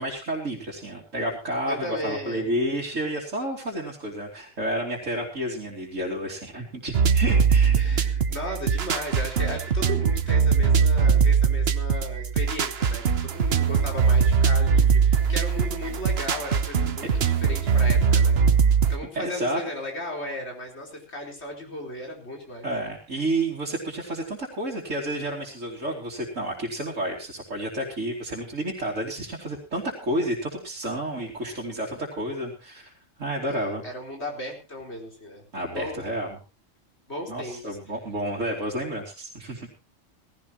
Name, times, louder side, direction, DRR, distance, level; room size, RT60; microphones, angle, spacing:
voice 1, 0.0-7.8 19.1-19.6 22.6-32.9 33.2-33.8 35.5-36.4 37.3-39.7, right 1 dB, 80° right, -4 dB, 3.3 m, -30 dB
voice 2, 1.7-2.5 7.8-18.4 18.9-22.7 33.5-35.4 35.7-36.0 37.1-37.6, left 1 dB, 60° left, 1 dB, 4.6 m, -36 dB
sound 1, 6.9-19.0, right 6 dB, 55° right, 1.2 m, -21 dB
18.5 x 16.0 x 3.0 m, 0.30 s
omnidirectional pair, 1.3 m